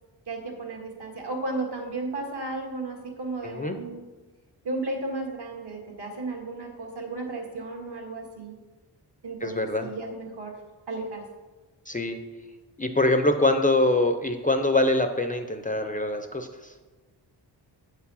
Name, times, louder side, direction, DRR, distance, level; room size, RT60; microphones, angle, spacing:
voice 1, 0.3-4.0 4.6-8.6 9.2-10.5 10.9-11.2, right 2 dB, 65° right, 1 dB, 2.0 m, -34 dB
voice 2, 3.4-3.8 9.4-9.9 11.9-12.2 12.8-16.7, left 2 dB, 20° left, 6 dB, 0.5 m, -24 dB
8.0 x 4.7 x 6.9 m, 1.2 s
wide cardioid pair, 125°, 43 cm